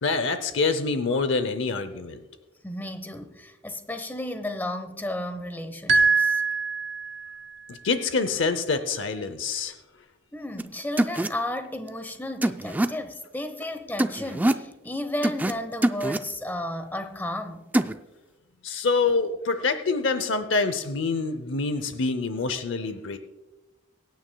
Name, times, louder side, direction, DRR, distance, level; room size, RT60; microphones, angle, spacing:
voice 1, 0.0-2.2 7.7-9.7 18.6-23.2, left 4 dB, 80° left, 0.7 m, -26 dB
voice 2, 2.6-6.4 10.3-17.7, left 1 dB, 10° left, 0.9 m, -33 dB
sound 1, 5.9-7.4, right 4 dB, 70° right, 0.8 m, -23 dB
sound 2, 10.6-10.7 11.0-11.3 12.4-12.9 14.0-14.6 15.2-15.5 15.8-16.2 17.7-17.9, right 1 dB, 10° right, 0.3 m, -23 dB
23.5 x 9.3 x 2.3 m
head